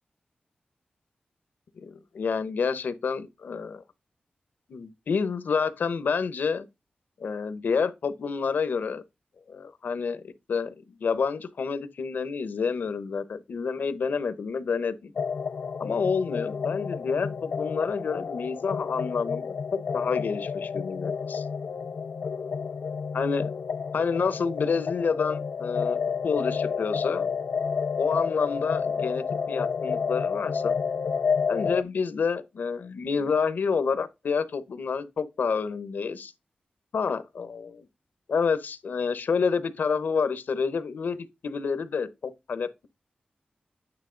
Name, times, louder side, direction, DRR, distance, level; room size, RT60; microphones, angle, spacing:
voice 1, 1.8-3.8 4.7-6.7 7.2-9.0 9.5-10.2 10.5-10.7 11.0-15.1 15.8-21.4 23.1-23.5 23.9-26.0 26.2-27.3 28.0-30.8 31.5-36.3 36.9-37.9 38.3-41.2 41.4-42.9, left 5 dB, 90° left, 0.8 m, -28 dB
sound 1, 15.2-31.8, left 6 dB, 65° left, 0.4 m, -30 dB
9.0 x 3.1 x 3.8 m
wide cardioid pair, 130°, 3 cm